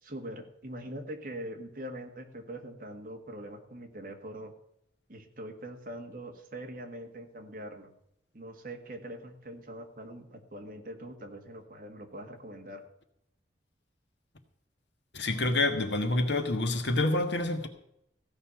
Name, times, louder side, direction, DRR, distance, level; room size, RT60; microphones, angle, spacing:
voice 1, 0.0-4.5 5.1-7.9 8.3-12.8, right 1 dB, 50° right, 1.8 m, -43 dB
voice 2, 15.1-17.7, left 2 dB, 75° left, 1.6 m, -27 dB
15.5 x 5.6 x 8.8 m
head